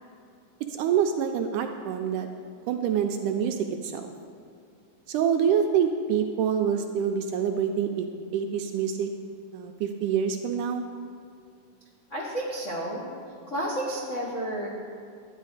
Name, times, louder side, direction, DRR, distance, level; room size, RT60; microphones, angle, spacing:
voice 1, 0.7-2.3 2.7-4.1 5.1-8.1 8.3-9.1 9.5-10.8, right 7 dB, 80° right, 5 dB, 2.0 m, -26 dB
voice 2, 12.1-13.0 13.5-14.7, right 1 dB, 55° left, -5 dB, 0.8 m, -31 dB
12.0 x 10.0 x 4.9 m, 2.4 s
omnidirectional pair, 4.0 m